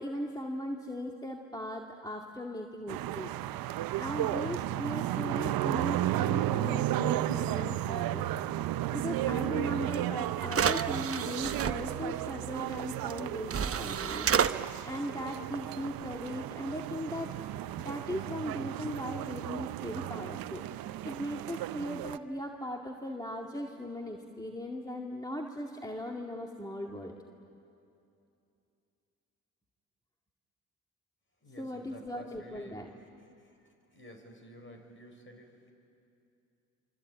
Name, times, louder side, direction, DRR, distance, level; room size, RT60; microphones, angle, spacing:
voice 1, 0.0-3.3 4.0-8.3 8.6-8.7 8.9-14.3 14.5-17.3 17.8-27.1 31.6-32.9, left 1 dB, 10° left, 1 dB, 2.2 m, -38 dB
sound 1, 2.9-22.2, right 13 dB, 75° right, 0.7 m, -34 dB
sound 2, 9.9-10.0 10.5-11.7 13.1-13.2 13.5-14.5, right 7 dB, 40° right, 0.9 m, -29 dB
voice 2, 31.4-32.8 33.9-35.7, left 1 dB, 35° left, 4 dB, 5.9 m, -51 dB
26.0 x 25.5 x 8.9 m, 2.7 s
supercardioid pair, 55°, 35 cm